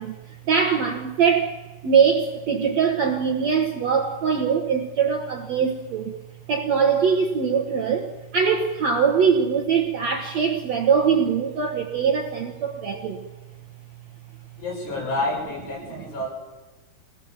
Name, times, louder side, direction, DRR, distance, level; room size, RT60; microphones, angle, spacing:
voice 1, 0.0-1.6 1.8-6.1 6.5-13.2, right 6 dB, 65° right, 3 dB, 1.7 m, -22 dB
voice 2, 14.6-16.3, left 2 dB, 80° left, -2 dB, 8.9 m, -29 dB
24.5 x 18.0 x 7.3 m, 1.2 s
omnidirectional pair, 4.7 m